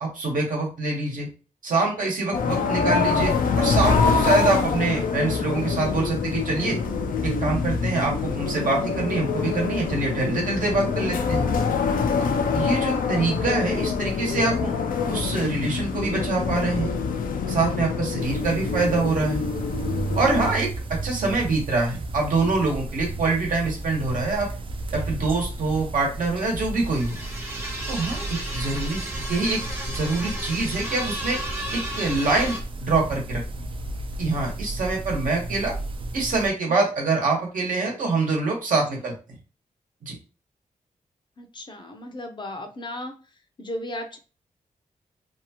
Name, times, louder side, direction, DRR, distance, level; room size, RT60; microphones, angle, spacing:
voice 1, 0.0-1.3 1.6-6.8 7.2-11.5 12.2-12.3 12.5-14.7 15.1-16.9 17.5-19.4 20.1-24.5 24.9-27.2 27.9-31.4 31.7-33.4 34.2-35.7 36.1-39.1 40.0-40.1, right 3 dB, 75° right, -1 dB, 1.1 m, -25 dB
sound 1, 2.3-20.5, left 5 dB, 85° left, 0.4 m, -25 dB
sound 2, 18.2-36.5, right 2 dB, 40° right, 0.4 m, -33 dB
sound 3, 26.8-32.6, right 1 dB, 15° right, 0.7 m, -34 dB
voice 2, 41.4-43.1 43.6-44.2, left 1 dB, 35° left, 5 dB, 0.5 m, -35 dB
2.7 x 2.3 x 2.8 m, 0.35 s
wide cardioid pair, 100°, 14 cm